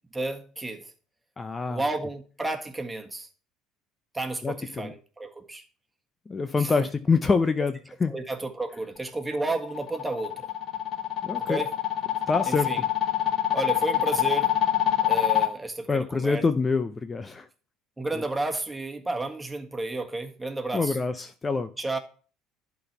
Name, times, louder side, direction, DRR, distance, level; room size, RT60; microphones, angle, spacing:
voice 1, 0.1-0.9 1.7-3.3 4.1-5.6 6.5-6.9 8.1-10.5 11.3-11.7 12.5-12.8 13.5-14.5 15.0-16.4 18.0-21.0 21.8-22.0, right 2 dB, 10° right, 1.6 m, -32 dB
voice 2, 1.4-1.8 4.4-4.9 6.3-8.1 11.2-11.6 12.3-12.7 15.9-17.5 20.7-21.7, left 4 dB, 25° left, 0.6 m, -26 dB
sound 1, 9.3-15.5, left 12 dB, 55° left, 1.2 m, -25 dB
11.5 x 4.1 x 5.9 m
hypercardioid pair, 70°, 0 cm